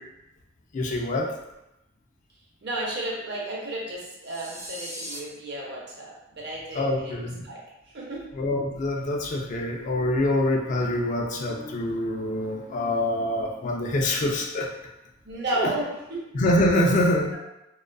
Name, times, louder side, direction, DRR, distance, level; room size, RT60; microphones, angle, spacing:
voice 1, 0.7-1.3 6.7-7.4 8.3-14.7 15.6-15.7 16.3-17.3, left 1 dB, 40° left, 0 dB, 0.3 m, -25 dB
voice 2, 2.6-7.6 7.9-8.2 15.2-16.2, right 1 dB, 60° right, -4 dB, 0.7 m, -33 dB
sound 1, 4.2-5.2, equal, 30° right, 1.0 m, -38 dB
2.4 x 2.3 x 2.2 m, 0.91 s
head